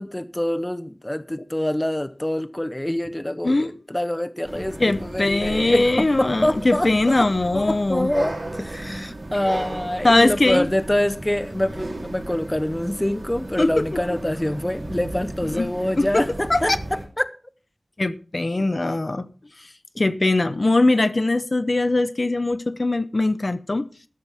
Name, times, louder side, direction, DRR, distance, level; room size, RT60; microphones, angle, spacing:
voice 1, 0.0-7.3 7.5-17.3, left 1 dB, 15° left, 0.8 m, -25 dB
sound 1, 4.4-17.0, right 2 dB, 60° right, 3.3 m, -35 dB
voice 2, 4.8-8.1 10.0-10.7 13.6-13.7 15.5-15.7 16.0-16.6 18.0-19.3 20.0-23.8, left 2 dB, 45° left, 0.8 m, -21 dB
13.5 x 12.0 x 3.6 m
wide cardioid pair, 65°, 0 cm